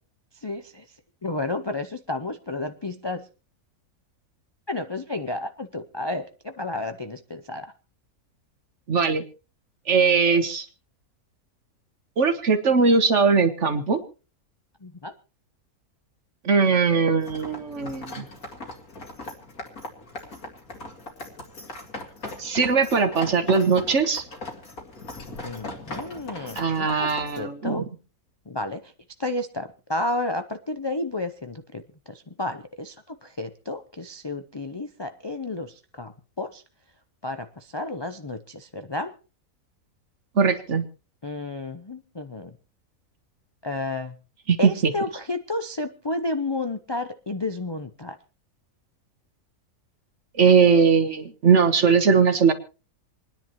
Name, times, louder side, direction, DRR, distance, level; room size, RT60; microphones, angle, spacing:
voice 1, 0.4-0.9 1.2-3.3 4.7-7.7 14.8-15.1 25.4-27.9 28.5-28.9 29.2-31.8 32.1-36.1 36.4-36.6 37.2-39.1 41.2-42.5 43.6-44.1 44.6-48.2, left 2 dB, 45° left, 8 dB, 0.3 m, -31 dB
voice 2, 8.9-9.2 9.9-10.6 12.2-14.0 16.4-18.2 22.4-24.2 26.6-27.8 40.3-40.8 44.5-44.7 50.4-52.5, right 5 dB, 50° right, 8 dB, 1.6 m, -20 dB
sound 1, 17.2-27.4, left 2 dB, 70° left, 2.9 m, -39 dB
27.5 x 10.5 x 3.1 m, 0.34 s
omnidirectional pair, 1.6 m